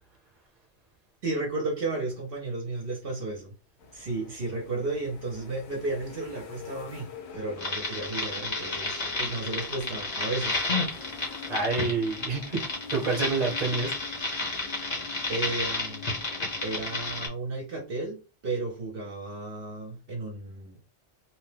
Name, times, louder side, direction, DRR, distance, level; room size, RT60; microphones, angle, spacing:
voice 1, 1.2-3.5 3.9-7.1 7.3-10.6 14.6-14.8 15.3-16.1 16.6-20.8, right 2 dB, 65° right, 0.9 m, -33 dB
sound 1, 3.8-17.2, left 5 dB, 85° left, 0.9 m, -45 dB
sound 2, 7.6-17.3, left 2 dB, 40° left, 0.9 m, -31 dB
voice 2, 11.5-12.6 12.9-13.9, right 4 dB, 40° right, 0.9 m, -27 dB
2.8 x 2.1 x 3.2 m
omnidirectional pair, 1.1 m